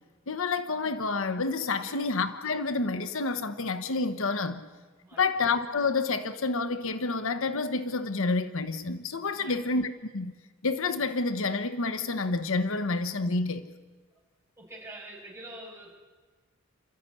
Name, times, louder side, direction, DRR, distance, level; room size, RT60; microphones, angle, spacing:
voice 1, 0.3-4.6 5.2-10.3 10.6-13.7, left 3 dB, 65° left, 1.0 m, -29 dB
voice 2, 1.8-2.1 5.0-5.4 9.3-9.7 14.6-16.0, right 1 dB, 15° right, 6.3 m, -46 dB
28.5 x 13.5 x 9.8 m
head